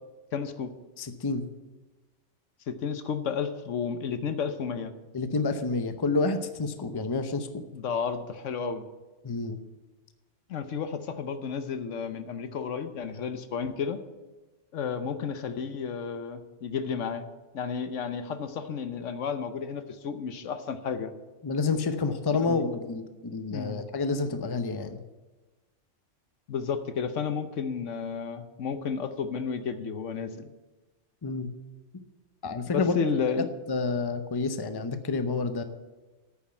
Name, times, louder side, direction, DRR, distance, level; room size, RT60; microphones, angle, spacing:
voice 1, 0.3-0.7 2.7-4.9 7.7-8.8 10.5-14.0 14.7-17.3 17.5-21.1 22.4-22.6 23.5-23.8 26.5-30.5 32.7-33.5, left 6 dB, 80° left, 10 dB, 1.2 m, -32 dB
voice 2, 1.0-1.4 5.1-7.6 9.2-9.6 21.4-25.0 31.2-31.5 32.4-32.9 33.7-35.6, left 3 dB, 25° left, 9 dB, 0.6 m, -29 dB
9.2 x 7.2 x 8.9 m, 1.2 s
omnidirectional pair, 1.3 m